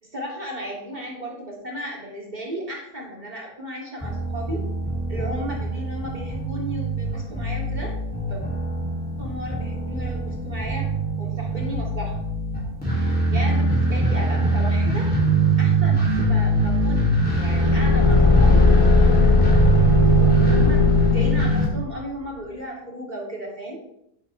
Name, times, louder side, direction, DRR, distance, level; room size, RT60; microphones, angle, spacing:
voice 1, 0.0-4.6 5.1-7.9 8.3-8.4 9.2-12.2 13.3-15.1 15.6-18.7 20.2-23.8, equal, 30° right, -3 dB, 3.5 m, -34 dB
sound 1, 4.0-21.6, right 2 dB, 5° left, 3.4 m, -22 dB
Car / Engine, 17.3-21.8, left 3 dB, 35° left, 0.5 m, -18 dB
10.5 x 10.5 x 3.6 m, 0.77 s
omnidirectional pair, 1.5 m